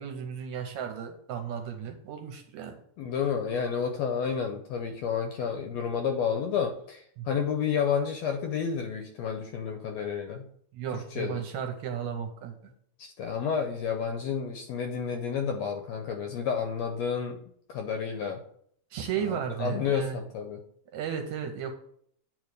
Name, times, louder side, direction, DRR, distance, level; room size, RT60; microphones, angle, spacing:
voice 1, 0.0-2.8 7.2-7.3 10.7-12.7 18.9-20.2 20.9-21.7, right 8 dB, 75° right, 4 dB, 1.9 m, -34 dB
voice 2, 3.0-10.5 10.9-11.4 13.0-17.4 17.7-18.4 19.3-20.6, left 7 dB, 80° left, 4 dB, 1.5 m, -30 dB
8.8 x 3.2 x 6.5 m, 0.66 s
omnidirectional pair, 3.7 m